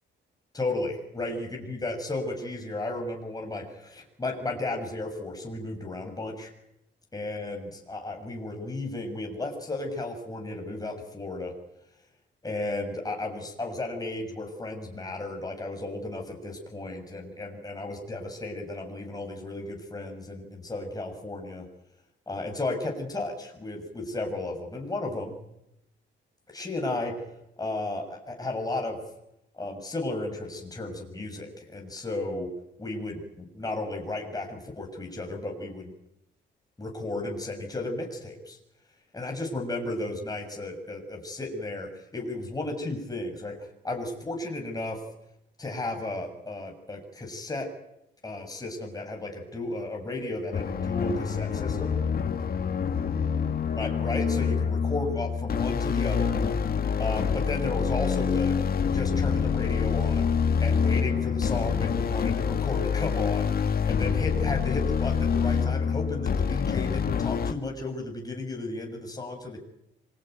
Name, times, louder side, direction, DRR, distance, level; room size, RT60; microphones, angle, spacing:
voice 1, 0.5-6.5 7.1-11.5 12.4-21.7 22.3-25.4 26.5-27.2 27.6-29.0 29.5-32.5 32.8-35.9 36.8-38.6 39.1-45.0 45.6-47.7 48.2-52.0 53.7-56.4 57.0-58.6 58.9-60.3 60.6-69.6, left 2 dB, 20° left, 1 dB, 6.5 m, -34 dB
sound 1, 50.5-67.5, left 6 dB, 50° left, 2.2 m, -26 dB
26.5 x 22.5 x 9.2 m, 0.85 s
cardioid pair, 90°, 20 cm